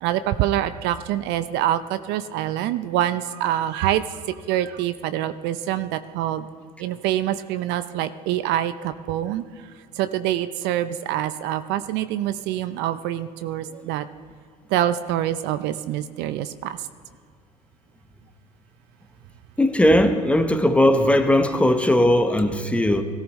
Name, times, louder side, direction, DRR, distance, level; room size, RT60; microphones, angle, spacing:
voice 1, 0.0-4.0 4.5-6.4 6.8-9.4 10.0-14.0 14.7-16.8, right 12 dB, 60° right, 12 dB, 0.6 m, -25 dB
voice 2, 19.6-23.0, left 1 dB, 5° left, 7 dB, 1.0 m, -18 dB
18.5 x 14.0 x 3.1 m, 2.1 s
hypercardioid pair, 85°, 21 cm